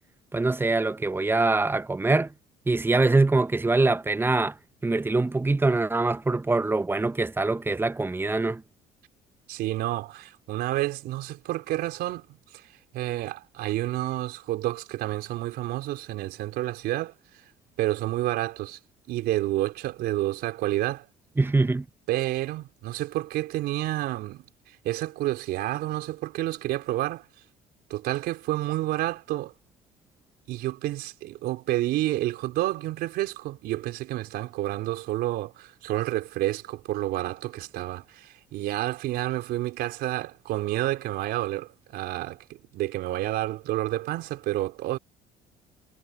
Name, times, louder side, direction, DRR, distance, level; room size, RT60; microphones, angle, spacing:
voice 1, 0.3-2.3 2.7-4.6 4.8-8.6 21.4-21.9, right 3 dB, 15° right, 0.7 m, -23 dB
voice 2, 9.5-12.7 12.9-17.1 17.8-18.8 19.1-21.1 22.1-24.4 24.8-27.2 27.9-29.5 30.5-45.0, right 16 dB, 75° right, 4.4 m, -29 dB
supercardioid pair, 75°, 17 cm